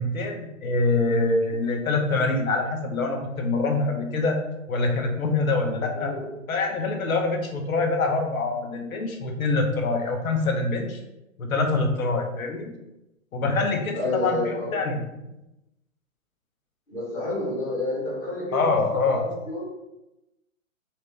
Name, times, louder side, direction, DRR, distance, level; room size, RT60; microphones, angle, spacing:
voice 1, 0.0-4.4 4.7-6.1 6.5-11.0 11.4-12.7 13.3-15.0 18.5-19.2, left 3 dB, 85° left, 3 dB, 1.0 m, -25 dB
voice 2, 5.9-6.4 13.9-14.9 16.9-19.6, left 1 dB, 10° left, -9 dB, 1.0 m, -30 dB
4.3 x 2.6 x 3.2 m, 0.92 s
hypercardioid pair, 160°, 41 cm